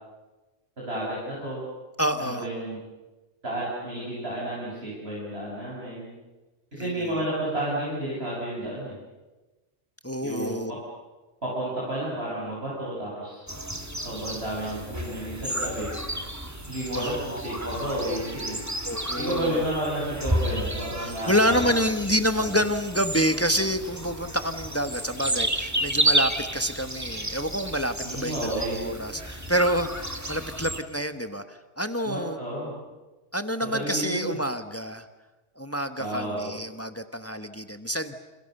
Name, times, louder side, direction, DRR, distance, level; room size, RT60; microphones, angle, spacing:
voice 1, 0.8-1.6 2.2-2.8 3.4-6.1 6.7-8.9 10.2-10.8 11.4-13.5 14.0-15.9 16.7-18.6 19.2-21.7 22.3-22.5 28.0-28.8 32.0-32.8 33.6-34.4 36.0-36.6, right 1 dB, 55° right, -6 dB, 8.3 m, -31 dB
voice 2, 2.0-2.5 6.7-6.9 10.0-10.7 16.9-18.0 18.8-19.6 21.0-32.4 33.3-35.1 35.6-38.2, equal, 10° left, 8 dB, 1.3 m, -28 dB
sound 1, 13.5-30.8, right 1 dB, 15° right, 2.1 m, -31 dB
29.5 x 28.5 x 6.8 m, 1.2 s
omnidirectional pair, 1.3 m